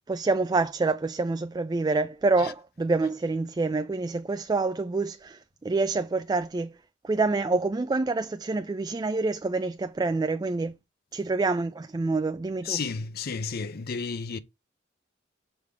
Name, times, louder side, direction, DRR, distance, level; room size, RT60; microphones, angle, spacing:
voice 1, 0.1-6.7 7.0-10.8 11.1-12.8, right 3 dB, 20° right, 0.3 m, -27 dB
voice 2, 12.6-14.4, left 5 dB, 50° left, 0.5 m, -32 dB
6.4 x 3.6 x 4.8 m
head